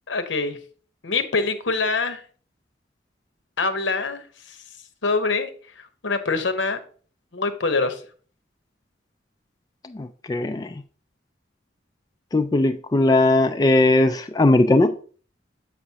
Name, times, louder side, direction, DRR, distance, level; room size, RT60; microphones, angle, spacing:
voice 1, 0.1-0.6 1.0-2.2 3.6-4.6 5.0-5.5 5.8-6.8 7.3-8.0, left 3 dB, 80° left, 1.0 m, -25 dB
voice 2, 9.9-10.7 12.3-14.9, left 2 dB, 20° left, 0.3 m, -19 dB
7.6 x 6.0 x 2.8 m
head